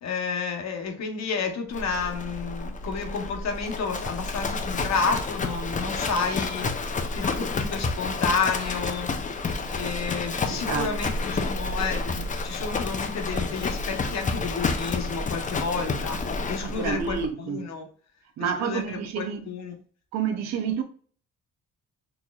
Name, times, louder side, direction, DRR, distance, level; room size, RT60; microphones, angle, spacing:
voice 1, 0.0-6.7 7.1-9.1 9.7-17.9 18.4-19.8, left 5 dB, 60° left, 0.9 m, -31 dB
Livestock farm animals working animals, 1.7-17.3, left 3 dB, 25° left, 0.5 m, -30 dB
voice 2, 10.5-10.9 16.6-17.7 18.4-19.5 20.1-20.8, right 7 dB, 60° right, 0.6 m, -29 dB
4.2 x 2.9 x 2.3 m
cardioid pair, 90°, 30 cm